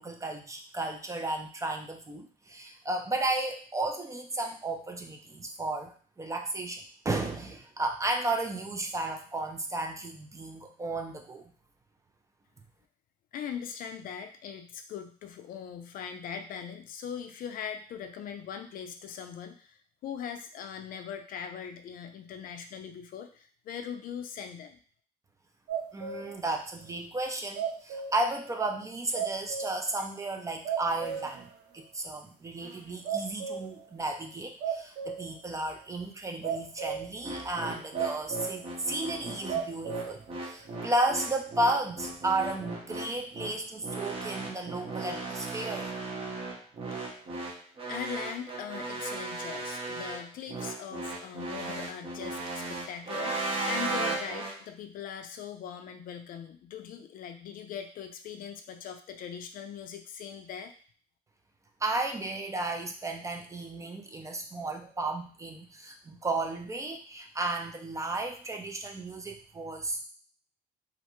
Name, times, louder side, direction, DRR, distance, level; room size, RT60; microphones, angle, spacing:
voice 1, 0.0-11.5 25.9-45.9 61.8-70.0, right 2 dB, 20° right, 3 dB, 0.4 m, -33 dB
voice 2, 13.3-24.8 47.9-53.4 53.6-60.7, left 7 dB, 55° left, 7 dB, 0.4 m, -40 dB
sound 1, 25.7-26.5 26.8-26.9 27.6-28.4 28.8-28.9 29.1-30.0 30.3-30.4 30.6-31.5 31.8-31.9 32.6-32.8 33.0-33.9 34.6-35.4 36.4-37.2 37.9-38.6 39.1-39.2 39.5-40.2 40.6-40.7, right 7 dB, 75° right, 0.6 m, -34 dB
sound 2, 37.2-54.5, right 2 dB, 35° right, 0.8 m, -36 dB
2.4 x 2.1 x 2.9 m, 0.44 s
cardioid pair, 110°, 17 cm